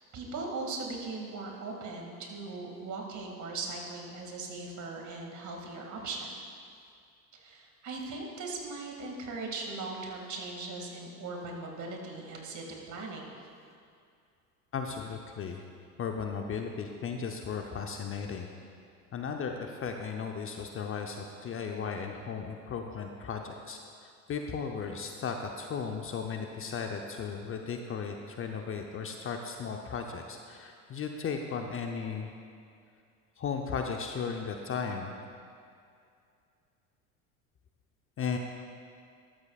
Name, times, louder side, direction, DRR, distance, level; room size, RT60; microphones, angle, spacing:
voice 1, 0.1-6.3 7.3-13.4, right 3 dB, 40° right, 0 dB, 2.3 m, -39 dB
voice 2, 14.7-15.6 16.0-18.5 19.1-23.8 24.3-32.3 33.4-35.1 38.2-38.4, left 6 dB, 30° left, 3 dB, 0.8 m, -36 dB
14.0 x 12.0 x 2.5 m, 2.4 s
hypercardioid pair, 75°, 45 cm